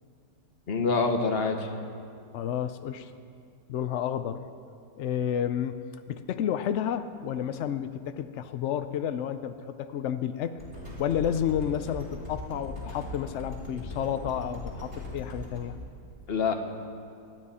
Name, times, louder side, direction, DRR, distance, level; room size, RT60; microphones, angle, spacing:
voice 1, 0.7-1.7 16.3-16.5, left 4 dB, 40° left, 5 dB, 1.2 m, -26 dB
voice 2, 2.3-3.1 3.7-4.4 5.0-10.5 11.0-15.8, left 9 dB, 85° left, 10 dB, 0.6 m, -31 dB
sound 1, 10.6-15.6, left 1 dB, 30° right, 4.3 m, -39 dB
26.5 x 10.5 x 4.2 m, 2.5 s
omnidirectional pair, 1.8 m